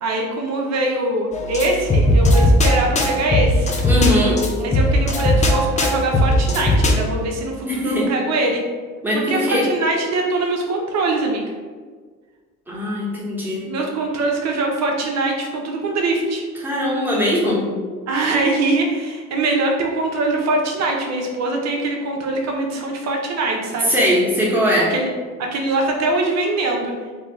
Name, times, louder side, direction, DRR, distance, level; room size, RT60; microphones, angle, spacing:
voice 1, 0.0-3.7 4.6-8.6 9.1-11.4 13.6-16.4 18.1-24.0 24.9-25.1 25.4-26.9, right 2 dB, 40° right, 1 dB, 0.7 m, -22 dB
sound 1, 1.3-7.1, left 1 dB, 15° left, 0.6 m, -18 dB
voice 2, 3.8-4.4 7.6-8.1 9.0-9.6 12.7-13.6 16.6-17.6 23.9-24.9, equal, 5° right, -5 dB, 1.2 m, -20 dB
3.4 x 2.9 x 3.3 m, 1.5 s
figure-of-eight pair, 50°, 43 cm